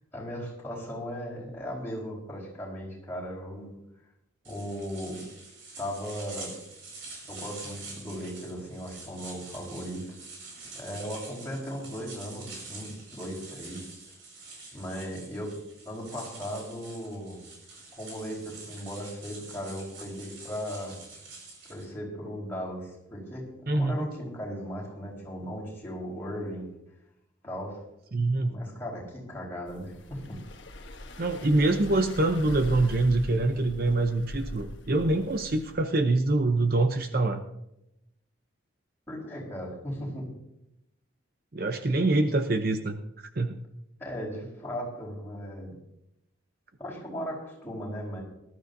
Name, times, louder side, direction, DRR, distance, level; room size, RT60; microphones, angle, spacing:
voice 1, 0.1-3.8 4.4-5.2 5.8-6.5 7.3-10.1 10.7-13.8 14.7-15.6 15.8-17.4 17.9-21.0 21.7-26.7 27.4-27.8 28.4-30.4 39.1-40.3 44.0-45.7 46.8-48.2, equal, 10° left, -4 dB, 4.5 m, -37 dB
sound 1, 4.4-21.9, right 3 dB, 75° right, 5.3 m, -46 dB
voice 2, 23.7-24.1 28.1-28.5 31.2-37.4 41.5-43.6, right 2 dB, 50° right, 7 dB, 0.7 m, -25 dB
sound 2, 29.7-35.7, left 1 dB, 65° left, 1.2 m, -41 dB
19.5 x 12.5 x 2.7 m, 0.85 s
head